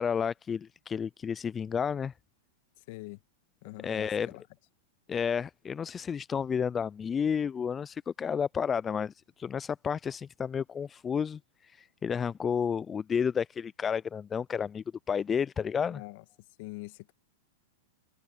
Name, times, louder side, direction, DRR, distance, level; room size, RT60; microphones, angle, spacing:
voice 1, 0.0-2.1 3.8-4.3 5.1-16.0, left 7 dB, 20° left, 0.3 m, -31 dB
voice 2, 2.8-3.2 3.6-4.4 15.9-16.2 16.6-17.1, left 23 dB, 55° left, 1.6 m, -44 dB
hypercardioid pair, 110°, 0 cm